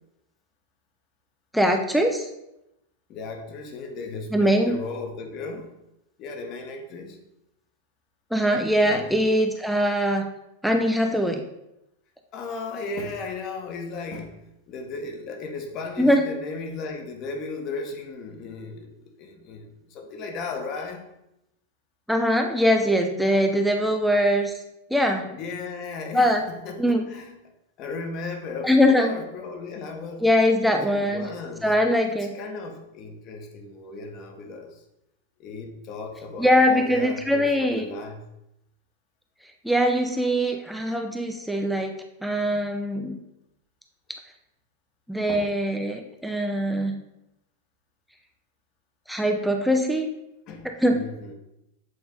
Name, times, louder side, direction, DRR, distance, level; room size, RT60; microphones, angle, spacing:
voice 1, 1.5-2.3 4.3-4.8 8.3-10.3 10.6-11.4 16.0-16.2 22.1-24.5 24.9-25.3 26.1-26.4 26.8-27.1 28.6-29.2 30.2-31.3 31.6-32.4 36.4-37.8 39.6-42.0 42.2-43.2 45.1-47.0 49.1-50.1 50.8-51.1, equal, ahead, 3 dB, 0.7 m, -22 dB
voice 2, 3.1-5.7 6.2-7.2 8.8-9.1 12.3-14.4 14.7-21.0 25.3-27.4 27.8-30.3 30.6-31.7 32.2-34.8 35.4-38.2 42.5-42.6 45.3-45.5 50.5-51.3, left 3 dB, 35° left, 4 dB, 1.3 m, -36 dB
8.0 x 4.7 x 3.9 m, 0.87 s
figure-of-eight pair, 90°, 0 cm